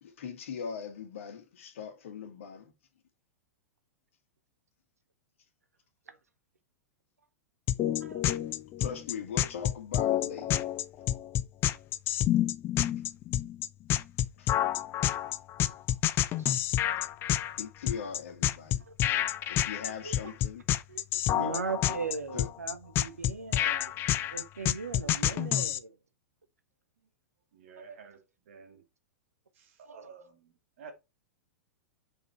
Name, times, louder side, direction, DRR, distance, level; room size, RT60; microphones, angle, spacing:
voice 1, 0.0-2.7 8.8-10.6 14.4-14.6 17.6-18.8 19.5-20.6 21.4-21.6 22.3-22.5, left 6 dB, 55° left, 1.8 m, -40 dB
sound 1, 7.7-25.8, left 12 dB, 30° left, 0.5 m, -28 dB
voice 2, 20.0-20.3 20.9-26.0 27.8-28.0 29.9-30.0, right 4 dB, 75° right, 1.1 m, -39 dB
voice 3, 27.5-28.9 29.5-30.9, right 5 dB, 55° right, 2.1 m, -52 dB
6.0 x 5.2 x 4.5 m
figure-of-eight pair, 95°, 8 cm